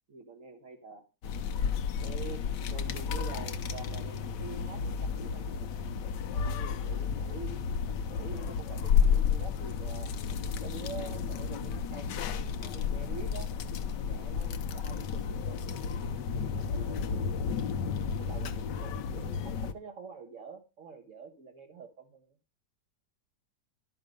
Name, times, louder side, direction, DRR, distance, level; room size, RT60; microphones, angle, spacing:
voice 1, 0.1-1.1 2.0-5.7 6.3-10.1 10.6-12.4 12.7-13.5 13.9-17.0 18.2-22.3, right 4 dB, 50° right, 2 dB, 1.4 m, -47 dB
sound 1, 1.2-19.7, left 6 dB, 85° left, 1.5 m, -32 dB
12.0 x 6.5 x 5.2 m, 0.29 s
omnidirectional pair, 1.8 m